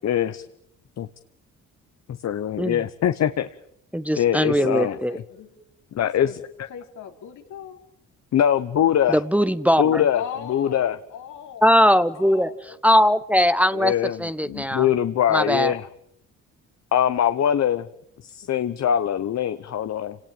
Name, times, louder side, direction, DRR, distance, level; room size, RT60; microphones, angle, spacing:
voice 1, 0.0-0.4 1.0-1.1 2.2-3.5 4.2-4.9 5.9-6.3 8.3-9.2 9.8-10.2 10.5-11.0 13.7-14.2 14.5-15.9 16.9-17.9 18.2-20.2, left 10 dB, 60° left, 11 dB, 1.1 m, -22 dB
voice 2, 3.9-5.2 9.1-10.0 11.6-12.5 12.8-13.9 14.2-14.9 15.3-15.7, equal, 5° right, 13 dB, 1.0 m, -20 dB
voice 3, 4.6-5.6 6.2-6.4 6.7-7.8 10.1-11.7 12.1-13.1, left 8 dB, 80° left, 4 dB, 3.7 m, -38 dB
28.5 x 18.5 x 9.1 m, 0.73 s
cardioid pair, 90°, 30 cm